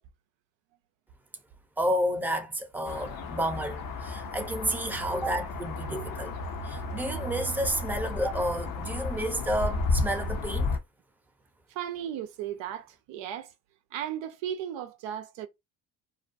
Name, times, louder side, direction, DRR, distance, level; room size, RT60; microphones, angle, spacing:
voice 1, 1.8-6.3 6.6-10.8, equal, 5° right, 0.7 m, -31 dB
sound 1, 2.8-10.8, left 3 dB, 45° left, 0.7 m, -33 dB
voice 2, 11.7-13.5 13.9-15.5, right 10 dB, 65° right, 0.6 m, -35 dB
2.6 x 2.1 x 2.6 m
supercardioid pair, 60°, 49 cm